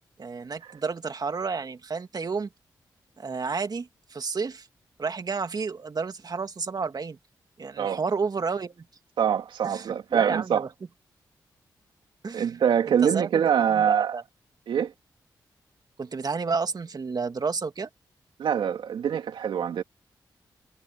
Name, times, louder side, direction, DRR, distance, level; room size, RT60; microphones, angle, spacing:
voice 1, 0.2-2.5 3.2-4.7 5.0-7.2 7.6-8.7 9.6-10.7 12.2-12.6 12.9-14.2 16.0-17.9, right 4 dB, 50° right, 2.4 m, -31 dB
voice 2, 9.2-10.6 12.3-14.2 14.7-14.9 18.4-19.8, right 8 dB, 80° right, 2.4 m, -24 dB
supercardioid pair, 45°, 8 cm